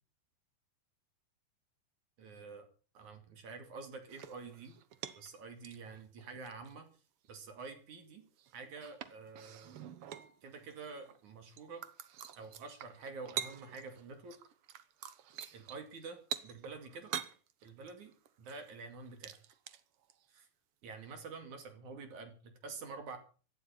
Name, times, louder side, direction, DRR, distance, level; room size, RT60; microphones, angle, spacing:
voice 1, 2.2-2.7 2.9-4.7 5.2-6.9 7.3-8.2 8.5-9.8 10.4-11.8 12.4-14.4 15.5-17.1 17.6-18.1 18.4-19.4 20.3-20.5 20.8-23.2, right 4 dB, 55° right, 7 dB, 3.6 m, -48 dB
sound 1, 4.1-5.4 5.6-6.9 7.3-7.4 8.4-11.2 11.5-14.0 14.3-20.3 21.1-21.2, right 9 dB, 85° right, 1.2 m, -46 dB
17.0 x 12.5 x 5.8 m, 0.39 s
omnidirectional pair, 4.3 m